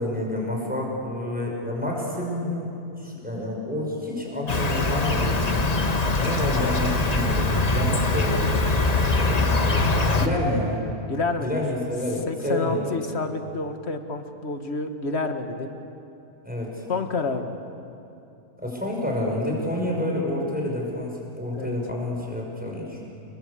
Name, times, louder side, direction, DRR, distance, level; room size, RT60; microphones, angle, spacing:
voice 1, 0.0-2.7 3.0-5.6 6.2-8.6 9.0-10.8 11.4-13.0 16.4-16.8 18.6-23.0, left 1 dB, 5° right, -2 dB, 5.9 m, -29 dB
Insect, 4.5-10.3, left 3 dB, 30° left, 1.3 m, -22 dB
voice 2, 11.1-11.6 12.3-15.7 16.9-17.6 21.5-21.8, left 3 dB, 45° left, 6 dB, 1.8 m, -29 dB
29.0 x 22.5 x 8.4 m, 2.7 s
omnidirectional pair, 1.5 m